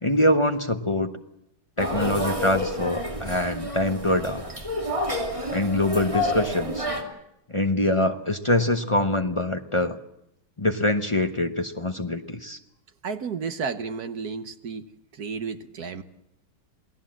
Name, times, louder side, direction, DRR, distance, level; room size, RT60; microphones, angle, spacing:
voice 1, 0.0-1.1 1.8-4.4 5.5-6.9 7.5-10.0 10.6-12.6, left 1 dB, 40° left, 6 dB, 0.4 m, -24 dB
sound 1, 1.8-7.0, left 1 dB, 15° right, 2.5 m, -29 dB
voice 2, 13.0-14.9 15.1-16.0, right 5 dB, 55° right, 9 dB, 1.4 m, -32 dB
28.0 x 18.0 x 7.5 m, 0.81 s
omnidirectional pair, 2.3 m